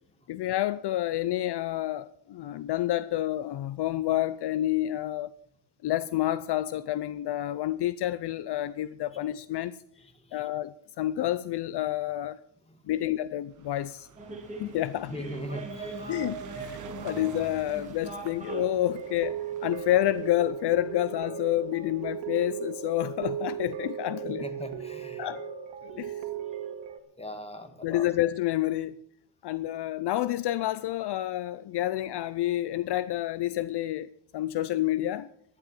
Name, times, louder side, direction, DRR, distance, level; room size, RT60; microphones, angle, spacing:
voice 1, 0.3-5.3 5.8-9.8 10.3-12.4 12.9-14.1 14.6-15.1 16.1-24.4 25.2-25.4 26.0-26.2 27.8-28.9 29.4-35.3, left 14 dB, 65° left, 0.6 m, -29 dB
voice 2, 10.0-10.5 12.7-12.9 14.3-14.6 15.0-16.2 16.5-16.7 17.1-17.2 24.2-25.3 25.9-26.6 27.2-28.1, equal, 15° left, 2.0 m, -42 dB
sound 1, 13.5-22.0 22.8-22.9 23.1-23.2 23.4-23.5, right 10 dB, 40° right, 0.8 m, -49 dB
sound 2, 14.2-20.4, right 3 dB, 15° right, 3.2 m, -42 dB
sound 3, 18.5-27.0, right 9 dB, 80° right, 2.1 m, -37 dB
12.0 x 10.5 x 7.5 m
cardioid pair, 120°, 44 cm